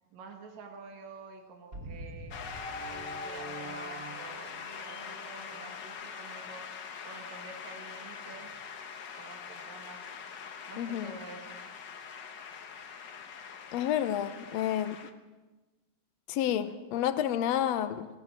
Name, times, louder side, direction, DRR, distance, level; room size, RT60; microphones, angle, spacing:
voice 1, 0.1-2.4 2.9-8.6 9.2-10.1 10.7-11.7, right 4 dB, 75° right, 3 dB, 2.9 m, -49 dB
sound 1, 1.7-6.1, right 1 dB, 30° right, 2.9 m, -46 dB
Shout / Cheering / Applause, 2.3-15.1, left 6 dB, 50° left, 1.4 m, -43 dB
voice 2, 10.8-11.1 13.7-15.0 16.3-18.1, left 10 dB, 70° left, 11 dB, 2.1 m, -30 dB
21.0 x 18.5 x 7.5 m, 1.2 s
omnidirectional pair, 3.3 m